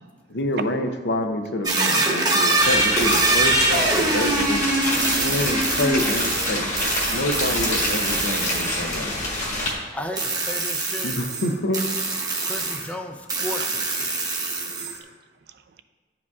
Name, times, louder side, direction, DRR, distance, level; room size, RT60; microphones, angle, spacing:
voice 1, 0.3-4.7 5.2-9.3 11.0-11.8, left 1 dB, 70° left, 5 dB, 0.6 m, -27 dB
sound 1, 1.6-8.8 10.2-12.9 13.3-15.0, right 2 dB, 25° right, 0.8 m, -24 dB
sound 2, 2.6-9.7, left 1 dB, 40° left, 1.6 m, -27 dB
voice 2, 5.0-5.4 9.7-10.0 12.4-12.9 13.6-13.8 14.3-15.1 15.5-15.8, right 6 dB, 65° right, 10 dB, 0.4 m, -41 dB
voice 3, 9.9-11.1 12.4-14.2, left 1 dB, 10° left, 5 dB, 0.4 m, -34 dB
11.0 x 4.9 x 2.3 m, 1.4 s
head